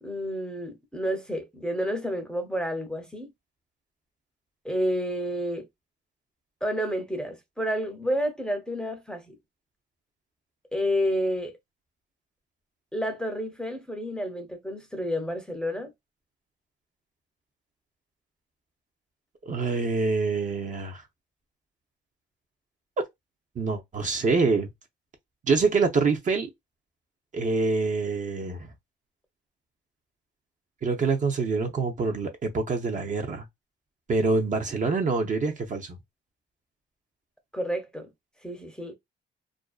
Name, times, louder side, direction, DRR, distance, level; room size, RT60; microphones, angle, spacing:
voice 1, 0.0-3.3 4.6-5.7 6.6-9.3 10.7-11.5 12.9-15.9 37.5-38.1 38.4-38.9, equal, 5° left, 0.6 m, -30 dB
voice 2, 19.5-21.0 23.6-24.7 25.5-26.5 27.3-28.7 30.8-33.4 34.1-36.0, right 4 dB, 40° right, 0.6 m, -25 dB
2.5 x 2.1 x 2.3 m
cardioid pair, 90°, 20 cm